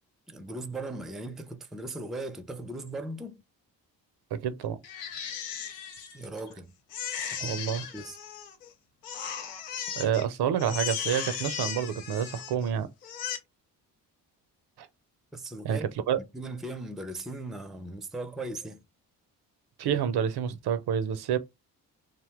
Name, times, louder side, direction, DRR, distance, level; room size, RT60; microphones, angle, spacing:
voice 1, 0.3-3.4 6.1-6.7 7.3-7.6 7.9-8.2 15.3-15.9 16.2-18.8, right 2 dB, ahead, 0.5 m, -38 dB
voice 2, 4.3-4.8 7.4-7.8 10.0-12.9 14.8-14.9 15.6-16.2 19.8-21.4, right 8 dB, 55° right, 0.5 m, -28 dB
Crying sobbing, 4.8-6.5 6.9-8.7 9.0-10.3 10.6-12.7 13.0-13.4, left 8 dB, 90° left, 0.6 m, -36 dB
2.7 x 2.0 x 3.4 m
hypercardioid pair, 40°, 47 cm